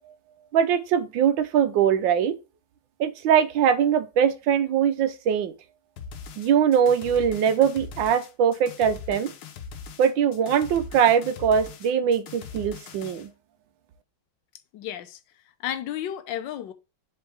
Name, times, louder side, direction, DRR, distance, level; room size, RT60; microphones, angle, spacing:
voice 1, 0.5-2.4 3.0-5.5 6.4-9.3 10.0-13.3, right 8 dB, 70° right, 1.5 m, -22 dB
sound 1, 6.0-13.3, left 6 dB, 85° left, 1.8 m, -41 dB
voice 2, 14.7-15.2 15.6-16.7, left 11 dB, 70° left, 1.4 m, -32 dB
7.5 x 4.3 x 3.5 m
omnidirectional pair, 2.2 m